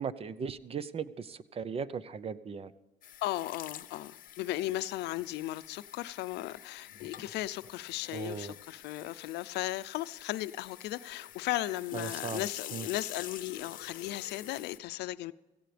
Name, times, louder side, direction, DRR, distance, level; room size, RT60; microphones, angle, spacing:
voice 1, 0.0-2.7 8.1-8.5 11.9-12.5 12.7-12.9, right 6 dB, 35° right, 0.7 m, -37 dB
sound 1, 3.0-14.8, left 11 dB, 55° left, 0.8 m, -47 dB
voice 2, 3.2-15.3, left 15 dB, 80° left, 0.6 m, -36 dB
17.0 x 15.5 x 3.4 m
cardioid pair, 110°, 17 cm